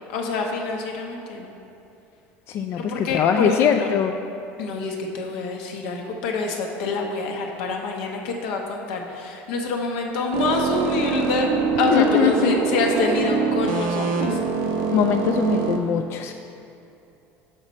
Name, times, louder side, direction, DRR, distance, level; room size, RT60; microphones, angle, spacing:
voice 1, 0.1-1.5 2.7-3.9 4.6-11.5 11.8-14.4, left 4 dB, 80° left, 1 dB, 1.0 m, -26 dB
voice 2, 2.5-4.1 11.9-12.6 14.9-16.3, left 7 dB, 45° left, 4 dB, 0.3 m, -21 dB
sound 1, 10.3-15.8, right 5 dB, 70° right, 0.8 m, -24 dB
6.5 x 6.3 x 4.2 m, 2.8 s
supercardioid pair, 115°, 6 cm